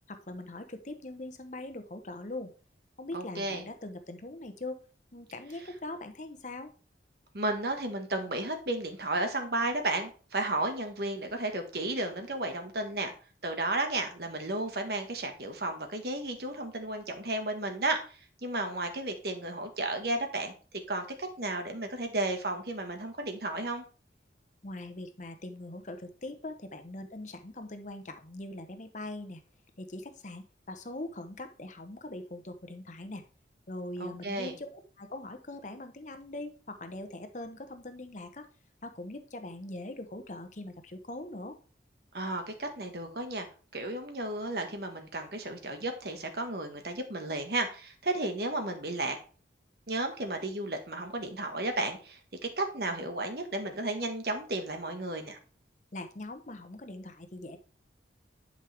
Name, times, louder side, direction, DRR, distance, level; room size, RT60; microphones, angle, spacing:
voice 1, 0.1-2.5 3.0-4.8 5.1-6.7 24.6-29.4 29.8-33.2 33.7-34.7 35.0-38.5 38.8-41.6 55.9-57.6, left 2 dB, 40° left, 8 dB, 1.0 m, -41 dB
voice 2, 3.1-3.7 7.3-13.1 13.4-20.5 20.9-23.8 34.0-34.5 42.1-43.5 43.7-49.2 49.9-55.4, right 2 dB, 60° right, 5 dB, 1.4 m, -33 dB
11.0 x 5.4 x 3.4 m, 0.38 s
head